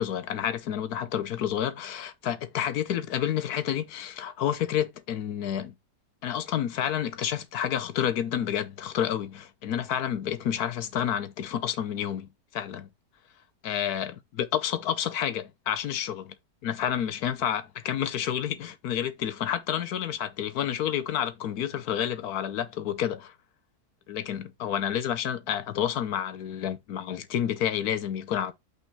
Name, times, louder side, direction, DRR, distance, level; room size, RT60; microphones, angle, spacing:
voice 1, 0.0-5.7 6.2-12.9 13.6-16.4 16.6-23.3 24.1-28.5, left 10 dB, 70° left, 1.4 m, -29 dB
5.9 x 3.5 x 5.4 m
omnidirectional pair, 1.7 m